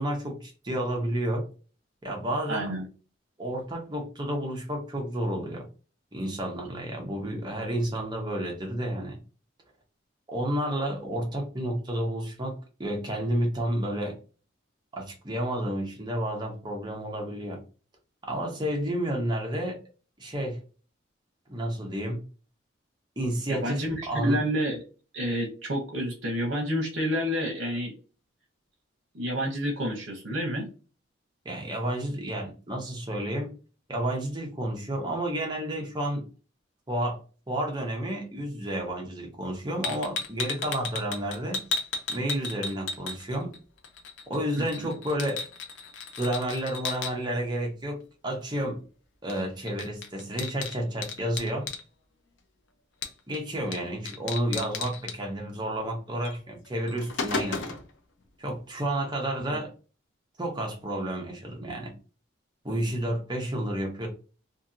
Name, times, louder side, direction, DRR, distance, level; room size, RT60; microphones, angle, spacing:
voice 1, 0.0-1.5 2.0-2.7 3.4-5.6 6.1-9.2 10.3-14.1 14.9-17.6 18.2-19.8 20.2-20.6 21.5-22.2 23.2-24.4 31.4-33.5 33.9-36.2 36.9-37.2 37.5-41.6 42.1-43.5 44.3-45.4 46.2-48.8 49.2-51.7 53.3-57.8 58.4-59.7 60.4-61.9 62.6-64.1, right 1 dB, 25° right, 1 dB, 0.8 m, -31 dB
voice 2, 2.5-2.8 23.5-24.8 25.1-27.9 29.1-30.7 44.6-44.9, equal, 70° right, 0 dB, 0.8 m, -29 dB
sound 1, 39.8-43.6 43.8-47.1 49.3-49.4 49.7-51.8 53.0-53.4 53.7-53.8 54.1-55.2 56.2-56.4 56.7-57.9, left 4 dB, 75° left, 0.5 m, -34 dB
2.8 x 2.7 x 2.5 m, 0.36 s
head